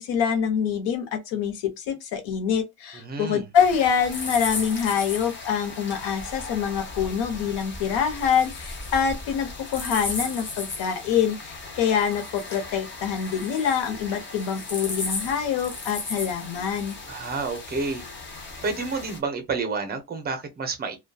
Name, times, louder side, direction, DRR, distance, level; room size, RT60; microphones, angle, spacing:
voice 1, 0.0-17.0, left 7 dB, 75° left, 0.8 m, -25 dB
voice 2, 2.9-3.5 17.1-18.1 18.6-21.0, right 4 dB, 25° right, 0.5 m, -29 dB
sound 1, 3.5-19.2, left 3 dB, 30° left, 0.6 m, -36 dB
2.5 x 2.2 x 2.2 m
cardioid pair, 165°, 42 cm